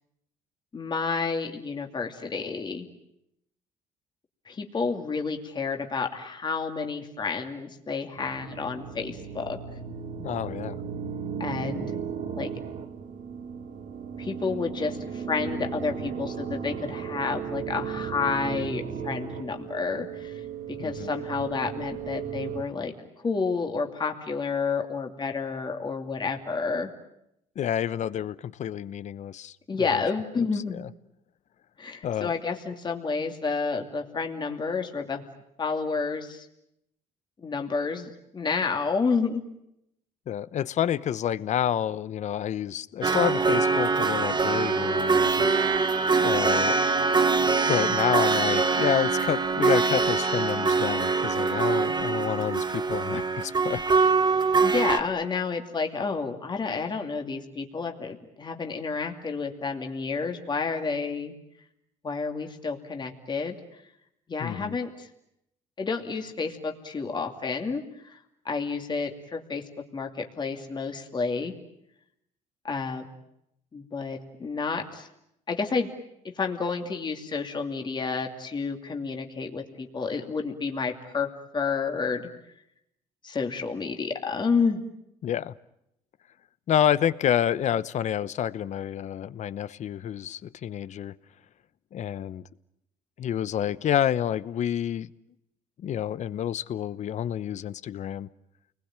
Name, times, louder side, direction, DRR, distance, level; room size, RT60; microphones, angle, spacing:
voice 1, 0.7-2.9 4.5-9.6 11.4-12.0 12.4-12.5 14.2-20.4 20.8-22.9 23.2-26.9 29.7-30.8 31.8-35.2 35.6-36.5 37.4-39.4 54.3-61.4 62.0-63.6 64.3-65.1 65.8-68.2 68.4-69.6 69.9-71.5 72.6-73.1 73.7-75.1 75.5-75.9 76.3-81.3 81.5-82.3 83.2-84.8, left 4 dB, 30° left, 2.7 m, -30 dB
sound 1, 8.2-22.6, right 7 dB, 65° right, 2.4 m, -35 dB
voice 2, 10.2-10.8 20.8-21.1 27.6-30.0 30.4-30.5 30.7-30.9 32.0-32.3 40.3-45.5 46.2-46.8 47.7-53.8 64.4-64.8 85.2-85.5 86.7-91.2 91.9-92.4 93.2-95.1 95.8-98.3, left 10 dB, 55° left, 0.9 m, -29 dB
sound 2, 43.0-55.0, right 4 dB, 30° right, 1.6 m, -23 dB
29.5 x 21.0 x 9.0 m
cardioid pair, 95°, 14 cm